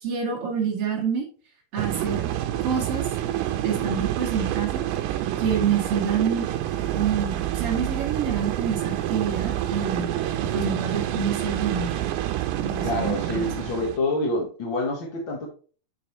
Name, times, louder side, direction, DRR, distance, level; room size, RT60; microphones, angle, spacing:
voice 1, 0.0-1.3 1.7-2.2 2.6-3.1 3.6-4.8 5.4-6.5 6.9-10.1 10.5-11.9 12.6-13.5, right 6 dB, 40° right, -1 dB, 2.5 m, -27 dB
sound 1, 1.8-14.0, right 12 dB, 80° right, 2.7 m, -28 dB
voice 2, 12.8-15.5, left 2 dB, 65° left, -1 dB, 1.1 m, -27 dB
7.8 x 6.2 x 3.1 m, 0.39 s
omnidirectional pair, 4.8 m